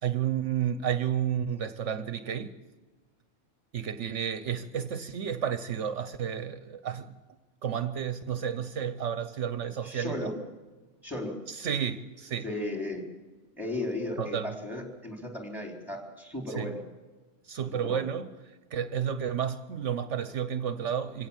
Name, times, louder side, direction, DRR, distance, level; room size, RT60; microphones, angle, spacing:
voice 1, 0.0-2.6 3.7-7.1 7.6-10.3 11.5-12.5 14.2-14.5 16.5-16.7 17.4-18.3 18.7-21.3, right 8 dB, 70° right, 1.2 m, -31 dB
voice 2, 9.8-10.4 11.0-11.4 12.4-13.0 13.6-16.8 17.6-18.1, left 1 dB, ahead, 4.1 m, -35 dB
25.0 x 17.5 x 7.4 m
omnidirectional pair, 1.3 m